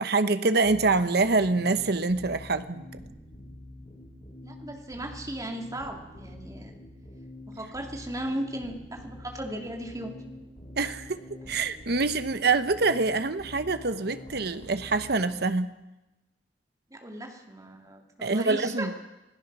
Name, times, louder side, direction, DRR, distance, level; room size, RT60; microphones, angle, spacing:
voice 1, 0.0-2.8 10.8-11.2 11.5-15.7 18.2-18.9, right 3 dB, 60° right, 11 dB, 1.0 m, -25 dB
sound 1, 0.6-15.3, left 1 dB, 35° left, 6.5 m, -46 dB
voice 2, 4.4-6.7 7.5-10.1 16.9-18.9, right 1 dB, 20° right, 2 dB, 2.6 m, -36 dB
26.5 x 17.0 x 6.2 m, 1.0 s
head